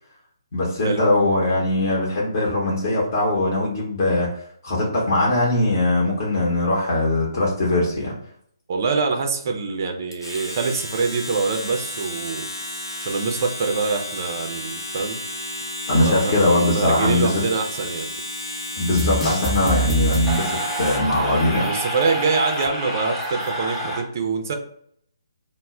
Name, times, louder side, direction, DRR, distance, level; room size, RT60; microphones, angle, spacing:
voice 1, 0.5-4.3 4.6-8.2 15.9-17.3 18.8-21.7, left 1 dB, 40° left, -4 dB, 0.7 m, -21 dB
voice 2, 8.7-12.5 13.0-15.2 15.9-16.3 16.6-18.1 21.6-24.5, right 4 dB, 40° right, 4 dB, 0.4 m, -25 dB
Domestic sounds home sounds, 10.1-21.1, left 1 dB, 90° left, 0.8 m, -32 dB
sound 1, 18.9-24.0, right 1 dB, 5° left, 0.6 m, -26 dB
2.1 x 2.0 x 3.6 m, 0.65 s
figure-of-eight pair, 140°, 2 cm